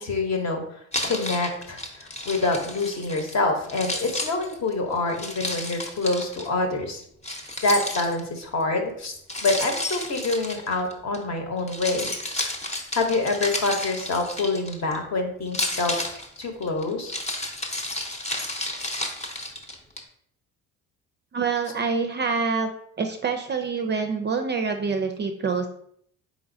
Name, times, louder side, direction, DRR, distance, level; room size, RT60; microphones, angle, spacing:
voice 1, 0.0-7.0 7.6-9.1 9.4-12.1 12.7-16.1 16.4-17.1, left 3 dB, 45° left, 4 dB, 1.0 m, -26 dB
Keys jangling, 0.9-3.4 3.7-6.5 7.2-8.4 9.3-11.2 11.6-15.0 15.5-20.0, left 1 dB, 20° left, 0.8 m, -32 dB
voice 2, 21.3-22.7 23.0-25.7, right 5 dB, 30° right, 5 dB, 0.4 m, -26 dB
4.1 x 3.8 x 2.6 m, 0.67 s
supercardioid pair, 75°, 38 cm